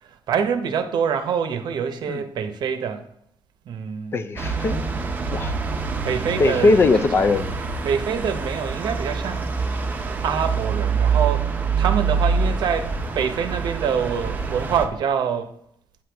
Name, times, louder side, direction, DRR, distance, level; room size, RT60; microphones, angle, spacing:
voice 1, 0.0-3.0 3.7-4.2 6.0-6.8 7.8-9.6 10.2-15.5, right 7 dB, 55° right, 0.8 m, -25 dB
voice 2, 4.1-4.8 5.3-5.5 6.4-7.5, left 3 dB, 25° left, 0.4 m, -19 dB
sound 1, 4.4-14.9, right 5 dB, 20° right, 0.6 m, -25 dB
8.8 x 7.8 x 3.4 m
cardioid pair, 175°, 9 cm